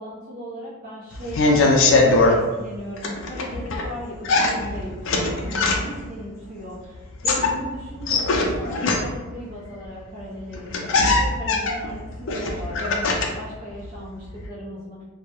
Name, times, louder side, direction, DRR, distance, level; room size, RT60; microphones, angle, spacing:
voice 1, 0.0-15.0, equal, 35° right, -8 dB, 0.4 m, -36 dB
sound 1, 1.1-2.4 3.0-3.9 4.2-6.1 7.0-9.3 10.2-10.3 10.5-13.5 13.8-14.5, left 3 dB, 55° left, 0.3 m, -21 dB
2.2 x 2.0 x 2.8 m, 1.2 s
head